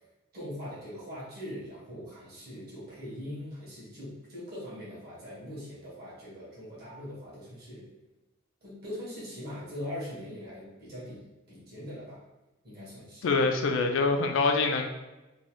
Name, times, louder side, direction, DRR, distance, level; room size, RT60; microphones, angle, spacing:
voice 1, 0.3-7.8 8.6-12.2 12.6-13.3, equal, 55° right, -8 dB, 1.3 m, -41 dB
voice 2, 13.2-14.9, left 3 dB, 70° left, 5 dB, 0.4 m, -25 dB
3.0 x 2.3 x 3.0 m, 1.0 s
head